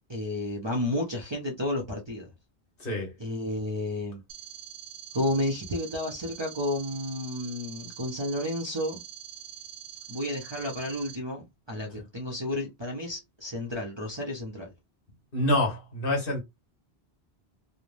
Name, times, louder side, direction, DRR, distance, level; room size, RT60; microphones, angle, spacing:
voice 1, 0.1-2.3 3.2-4.2 5.1-9.0 10.1-14.7, left 1 dB, 30° right, 0.6 m, -31 dB
voice 2, 2.8-3.1 15.3-16.4, left 1 dB, 55° left, 1.4 m, -26 dB
sound 1, 4.3-11.2, right 10 dB, 75° right, 0.9 m, -44 dB
3.2 x 2.1 x 2.5 m
omnidirectional pair, 1.1 m